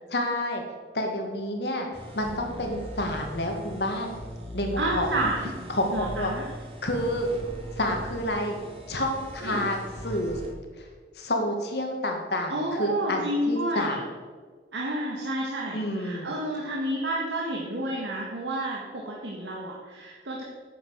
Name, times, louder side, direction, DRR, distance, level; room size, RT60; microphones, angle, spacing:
voice 1, 0.1-0.6 0.9-1.9 2.1-4.1 4.5-5.3 5.7-6.3 6.8-7.3 7.8-8.6 8.9-10.4 10.8-10.9 11.2-14.1 15.7-16.3, left 1 dB, 70° left, 2 dB, 2.0 m, -29 dB
sound 1, 1.9-10.5, equal, 30° right, 1.8 m, -40 dB
voice 2, 4.8-5.5 5.9-6.5 9.4-9.7 12.5-14.0 14.7-20.4, right 1 dB, 85° right, -3 dB, 1.7 m, -30 dB
9.6 x 8.1 x 6.6 m, 1.5 s
head